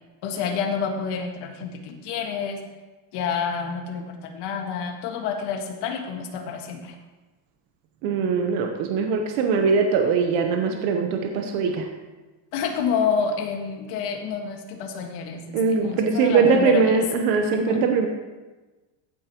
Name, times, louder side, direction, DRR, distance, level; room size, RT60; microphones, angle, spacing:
voice 1, 0.2-2.6 3.1-7.0 12.5-15.6 15.8-17.0 17.7-17.8, left 6 dB, 55° left, 2 dB, 1.9 m, -28 dB
voice 2, 8.0-11.9 15.5-18.1, right 5 dB, 65° right, 3 dB, 1.3 m, -21 dB
15.5 x 8.6 x 3.1 m, 1.2 s
cardioid pair, 155°, 48 cm